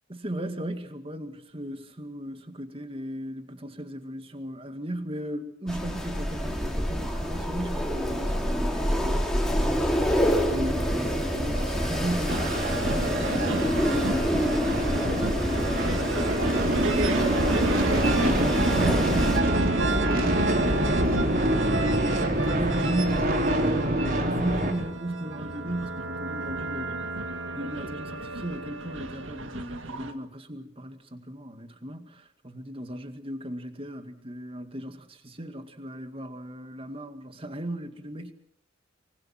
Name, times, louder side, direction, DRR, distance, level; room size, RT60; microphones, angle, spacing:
voice 1, 0.1-16.9 17.4-20.7 21.2-21.8 22.2-38.3, right 1 dB, 30° right, 7 dB, 2.1 m, -36 dB
Wind, 5.7-19.4, equal, 5° left, 3.4 m, -27 dB
sound 1, 10.0-24.7, right 1 dB, 50° right, 4.0 m, -27 dB
sound 2, 12.3-30.1, right 2 dB, 80° right, 2.0 m, -32 dB
24.5 x 24.0 x 6.0 m, 0.67 s
head